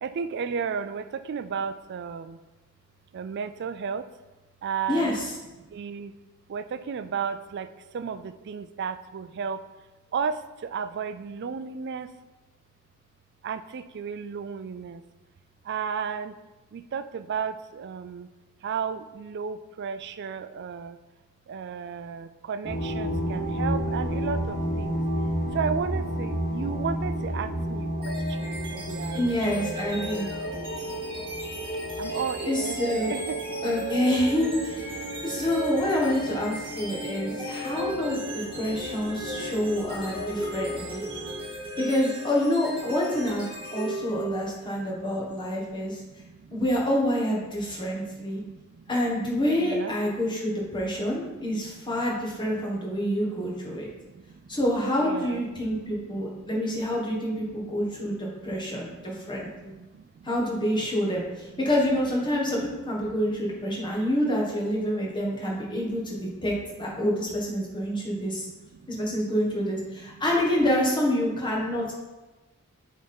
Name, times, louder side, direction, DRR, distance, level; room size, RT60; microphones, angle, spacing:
voice 1, 0.0-2.4 3.1-4.1 4.6-5.1 5.6-6.1 6.5-9.7 10.1-12.1 13.4-15.0 15.6-16.3 16.7-18.3 18.6-21.0 21.5-25.0 25.5-29.4 30.2-31.3 32.0-32.8 33.1-33.7 35.0-35.1 37.0-37.3 40.6-40.7 41.2-41.6 43.9-44.5 44.7-45.1 45.5-46.6 47.7-48.9 49.6-49.9 51.0-51.3 51.7-51.8 53.6-54.6 55.0-55.4 55.8-56.8 57.6-57.7 58.2-60.3 63.9-64.0 65.5-65.7 67.8-68.0 68.3-68.4 68.7-68.9 70.1-70.2, right 6 dB, 50° right, 11 dB, 0.4 m, -35 dB
voice 2, 4.9-5.3 29.1-30.3 32.1-32.2 32.5-33.1 33.6-41.0 41.8-46.0 46.5-48.4 48.9-53.9 54.5-59.7 60.2-66.5 66.8-68.4 68.9-71.9, equal, 20° left, -3 dB, 1.5 m, -27 dB
sound 1, 22.6-41.3, right 1 dB, 35° left, 1.8 m, -32 dB
sound 2, 28.0-44.7, right 1 dB, 25° right, 1.9 m, -36 dB
9.1 x 3.6 x 4.4 m, 1.1 s
head